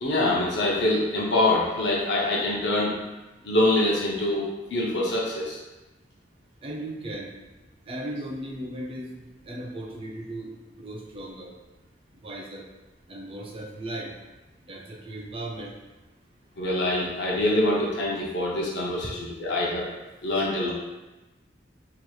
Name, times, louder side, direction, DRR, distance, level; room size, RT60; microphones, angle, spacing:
voice 1, 0.0-2.9 3.4-5.6 16.6-19.8 20.2-20.7, left 1 dB, 70° left, -4 dB, 0.7 m, -25 dB
voice 2, 6.6-7.3 7.9-11.5 12.2-12.7 13.1-14.1 14.6-15.7 20.3-20.5, right 1 dB, 30° right, 0 dB, 0.4 m, -37 dB
4.7 x 2.9 x 2.3 m, 1.1 s
head